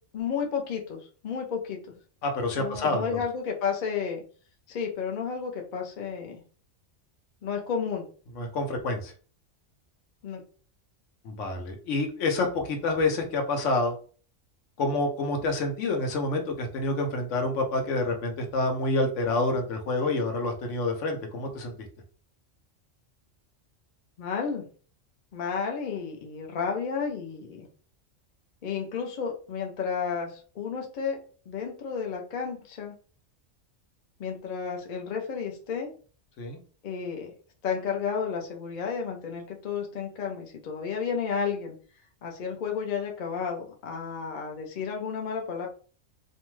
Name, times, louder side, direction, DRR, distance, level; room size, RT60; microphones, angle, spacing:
voice 1, 0.1-1.8 2.6-4.2 4.7-6.4 7.4-8.1 10.2-10.4 24.2-24.6 25.3-27.7 28.6-31.2 31.5-32.9 34.2-35.9 36.8-37.3 37.6-41.8 42.2-45.7, left 6 dB, 50° left, 1 dB, 0.6 m, -32 dB
voice 2, 2.2-3.2 8.4-9.1 11.2-13.9 14.8-21.7 36.4-36.6, left 2 dB, 80° left, 3 dB, 1.0 m, -28 dB
2.6 x 2.2 x 3.0 m, 0.40 s
omnidirectional pair, 1.2 m